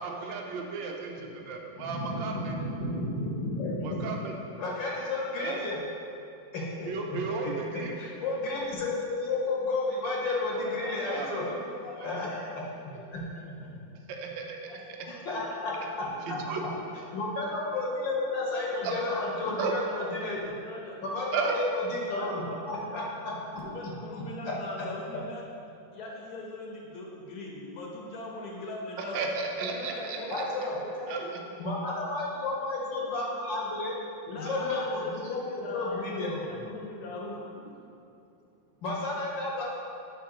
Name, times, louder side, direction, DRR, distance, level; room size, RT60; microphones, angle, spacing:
voice 1, 0.0-2.6 3.8-4.3 5.4-5.7 6.8-7.9 11.1-11.5 14.1-14.6 16.3-16.6 18.8-19.0 19.6-19.7 21.3-21.6 29.1-30.2 31.1-31.3, right 4 dB, 75° right, 1 dB, 1.4 m, -34 dB
voice 2, 1.8-4.2 4.6-5.8 6.5-11.4 12.0-12.6 13.1-13.2 13.6-13.8 15.1-16.4 17.1-20.5 21.0-23.6 30.3-30.8 31.6-33.9 34.4-36.4 38.8-39.6, left 2 dB, 70° left, -4 dB, 1.8 m, -32 dB
voice 3, 10.5-12.3 12.9-13.9 14.6-14.8 19.5-19.7 29.6-31.2, right 1 dB, 40° right, -9 dB, 1.1 m, -43 dB
voice 4, 19.1-19.6 20.0-21.0 22.1-22.6 23.5-25.4 25.9-29.1 34.3-37.4, left 2 dB, 55° left, -2 dB, 1.4 m, -41 dB
7.0 x 5.4 x 3.8 m, 2.6 s
omnidirectional pair, 2.1 m